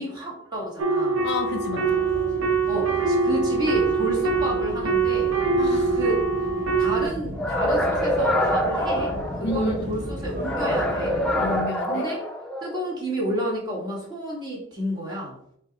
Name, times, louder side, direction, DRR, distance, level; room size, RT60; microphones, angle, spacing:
voice 1, 0.0-1.2 2.7-5.4 5.9-6.2 6.8-11.1 11.8-12.3 12.6-15.4, right 1 dB, 20° right, -4 dB, 1.3 m, -30 dB
sound 1, 0.8-7.1, right 4 dB, 80° right, 0.6 m, -23 dB
sound 2, 1.1-11.6, equal, 40° right, 1.1 m, -36 dB
voice 2, 1.2-2.1 5.6-6.0 9.4-9.9 11.4-12.1, left 2 dB, 55° left, 5 dB, 0.5 m, -30 dB
sound 3, 7.4-9.8 10.4-12.8, equal, 5° left, 0.5 m, -25 dB
4.4 x 2.3 x 3.8 m, 0.71 s
head